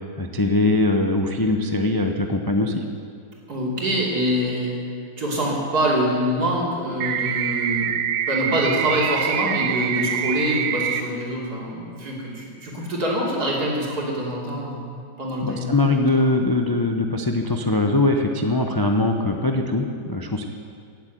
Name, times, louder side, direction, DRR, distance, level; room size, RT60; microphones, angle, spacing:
voice 1, 0.2-2.8 15.4-20.4, left 2 dB, 35° left, 4 dB, 0.3 m, -21 dB
voice 2, 3.5-4.8 5.2-7.9 8.3-14.8 15.2-16.3, equal, 55° right, -3 dB, 3.6 m, -25 dB
sound 1, 7.0-11.0, right 9 dB, 85° right, 1.4 m, -25 dB
16.5 x 8.2 x 9.2 m, 2.3 s
omnidirectional pair, 2.0 m